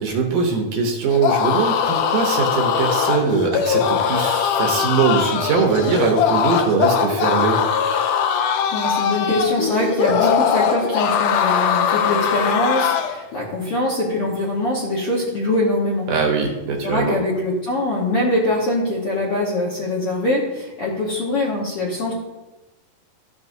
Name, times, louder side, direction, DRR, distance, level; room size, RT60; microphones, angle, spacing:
voice 1, 0.0-7.6 10.2-10.3 16.1-17.2, right 5 dB, 70° right, 2 dB, 2.2 m, -21 dB
sound 1, 1.1-13.2, left 8 dB, 85° left, 1.8 m, -21 dB
voice 2, 8.7-16.1 16.8-22.2, left 1 dB, 65° left, -5 dB, 1.4 m, -23 dB
14.0 x 6.1 x 2.7 m, 1.1 s
omnidirectional pair, 4.3 m